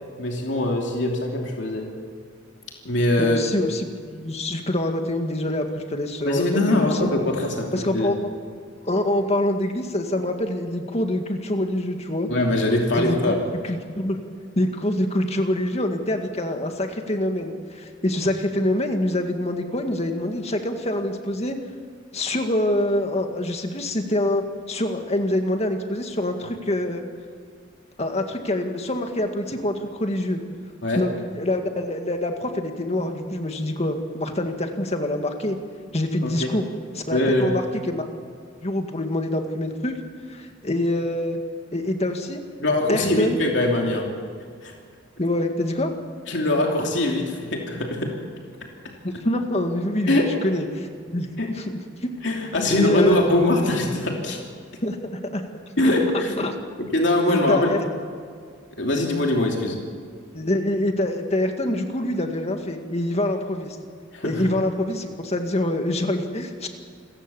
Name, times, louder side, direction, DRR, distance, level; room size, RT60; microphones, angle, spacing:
voice 1, 0.2-1.8 2.8-3.4 6.2-8.1 12.3-13.4 30.8-31.0 36.2-36.5 37.1-37.5 42.6-44.1 44.6-44.7 46.3-48.1 50.1-50.2 51.4-51.5 52.2-54.4 55.8-56.4 56.9-57.8 58.8-59.8 64.1-64.4, left 1 dB, 65° left, 0 dB, 3.1 m, -22 dB
voice 2, 3.2-7.1 7.7-8.3 8.8-12.3 12.9-13.2 13.6-14.2 14.6-21.6 22.1-27.0 28.0-30.4 31.0-35.6 35.9-36.7 36.9-38.1 38.6-40.0 40.3-41.4 41.7-42.4 42.9-43.4 45.2-45.9 49.0-51.7 52.7-53.2 54.8-55.4 55.8-55.9 56.4-56.6 57.3-57.8 60.3-63.8 64.2-66.7, left 1 dB, 35° left, 5 dB, 2.1 m, -25 dB
28.0 x 15.5 x 7.2 m, 2.2 s
head